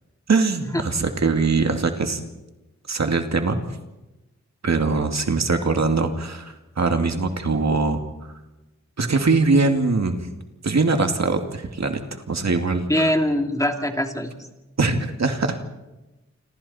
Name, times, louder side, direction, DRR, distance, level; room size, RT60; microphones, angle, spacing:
voice 1, 0.3-2.2 2.9-3.6 4.6-8.1 9.0-10.3 10.6-12.0 12.3-13.1 14.8-15.6, right 3 dB, 65° right, 5 dB, 2.3 m, -22 dB
voice 2, 12.9-14.3, left 1 dB, 10° left, 3 dB, 2.9 m, -22 dB
28.5 x 26.0 x 4.3 m, 1.0 s
cardioid pair, 60°, 29 cm